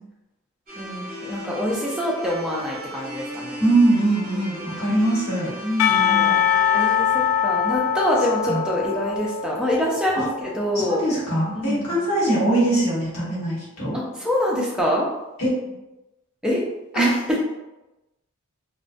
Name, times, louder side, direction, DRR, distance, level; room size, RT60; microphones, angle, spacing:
sound 1, 0.7-8.8, equal, 40° right, 0.7 m, -38 dB
voice 1, 0.8-3.6 4.5-4.8 6.1-6.4 6.7-11.0 11.5-12.0 13.9-15.1 16.4-16.6 16.9-17.4, left 1 dB, 5° right, -4 dB, 0.4 m, -25 dB
voice 2, 3.6-6.4 8.5-8.6 10.1-10.3 10.7-14.0 15.4-15.5 16.9-17.1, right 1 dB, 65° left, -7 dB, 1.0 m, -22 dB
Percussion / Church bell, 5.8-10.9, left 8 dB, 85° left, 0.3 m, -23 dB
2.4 x 2.1 x 2.4 m, 0.99 s
head